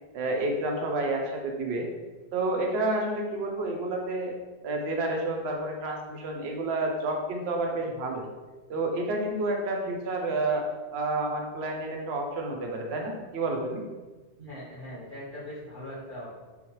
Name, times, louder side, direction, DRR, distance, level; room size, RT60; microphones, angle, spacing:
voice 1, 0.1-1.9 2.3-4.3 4.6-8.3 8.7-10.7 10.9-13.9, right 2 dB, 80° right, 1 dB, 0.8 m, -29 dB
voice 2, 14.4-16.3, left 1 dB, 50° right, -10 dB, 1.5 m, -40 dB
3.0 x 2.1 x 2.8 m, 1.3 s
omnidirectional pair, 1.1 m